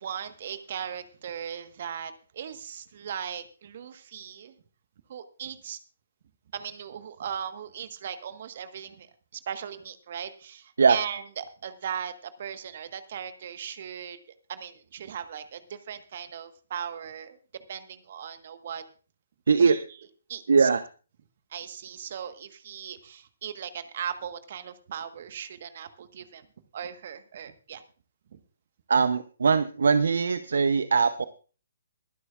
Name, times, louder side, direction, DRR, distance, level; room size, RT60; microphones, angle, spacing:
voice 1, 0.0-4.5 5.1-5.8 6.5-14.2 14.5-17.4 17.7-18.8 19.6-20.7 21.5-26.5 26.7-27.8 28.3-28.4, right 8 dB, 50° right, 10 dB, 1.4 m, -38 dB
voice 2, 20.5-20.8 28.9-31.2, right 5 dB, 65° right, 13 dB, 0.7 m, -21 dB
22.0 x 11.0 x 2.5 m, 0.38 s
figure-of-eight pair, 130°, 0 cm